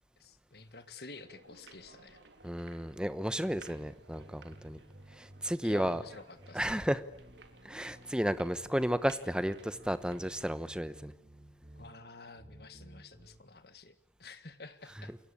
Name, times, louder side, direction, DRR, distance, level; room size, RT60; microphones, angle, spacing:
voice 1, 0.2-2.2 5.6-6.8 11.8-13.9 14.2-15.1, left 3 dB, 60° left, 1.9 m, -50 dB
sound 1, 1.1-10.5, right 3 dB, 80° right, 3.4 m, -57 dB
voice 2, 2.4-4.8 5.2-6.0 6.5-7.0 7.6-11.1, equal, 5° right, 1.0 m, -33 dB
sound 2, 3.4-13.4, right 1 dB, 30° right, 6.5 m, -56 dB
28.0 x 22.5 x 8.7 m
head